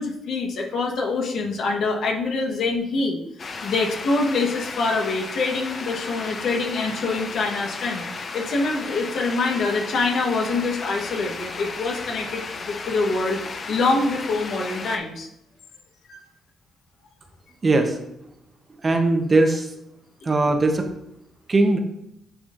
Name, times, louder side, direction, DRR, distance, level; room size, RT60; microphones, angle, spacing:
voice 1, 0.0-3.2 3.6-8.0 8.3-15.3 16.1-16.2 20.2-20.3, left 3 dB, 70° left, 1 dB, 1.1 m, -25 dB
sound 1, 3.4-15.0, left 4 dB, 45° left, 0.7 m, -34 dB
voice 2, 17.6-18.0 18.8-19.7 20.2-20.9 21.5-21.8, right 2 dB, 30° right, 5 dB, 0.8 m, -19 dB
8.9 x 4.1 x 2.5 m, 0.79 s
cardioid pair, 90°, 0 cm